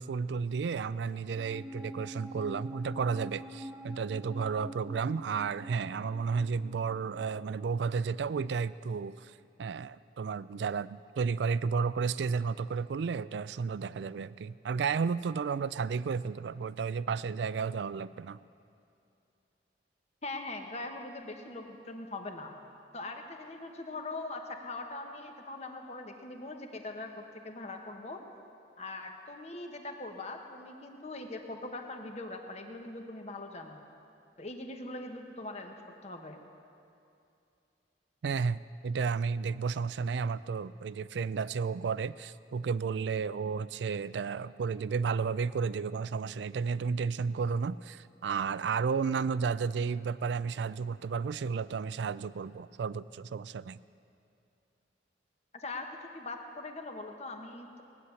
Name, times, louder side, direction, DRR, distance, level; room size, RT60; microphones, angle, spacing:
voice 1, 0.0-9.3 9.6-18.4 38.2-53.8, right 5 dB, 75° right, 17 dB, 0.4 m, -32 dB
sound 1, 1.3-8.2, equal, 5° right, 0.6 m, -46 dB
voice 2, 20.2-22.5 22.9-28.2 28.8-33.8 34.4-35.7 36.0-36.4 55.5-57.8, left 2 dB, 35° left, 4 dB, 1.2 m, -41 dB
18.0 x 9.6 x 7.1 m, 2.6 s
head